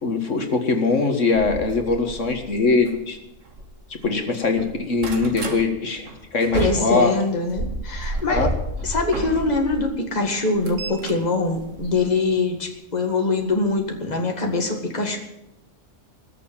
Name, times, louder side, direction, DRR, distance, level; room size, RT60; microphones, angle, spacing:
voice 1, 0.0-3.2 4.0-7.1 8.3-8.5, left 4 dB, 70° left, 5 dB, 2.0 m, -22 dB
sound 1, 1.3-4.1 4.4-5.6 6.1-9.8 10.3-12.4 13.5-13.7 14.2-14.3 14.5-14.6, right 2 dB, 75° right, 2.1 m, -31 dB
voice 2, 6.5-8.5 8.8-15.2, left 3 dB, 30° left, 2 dB, 2.1 m, -23 dB
20.5 x 6.9 x 8.7 m, 0.87 s
omnidirectional pair, 1.3 m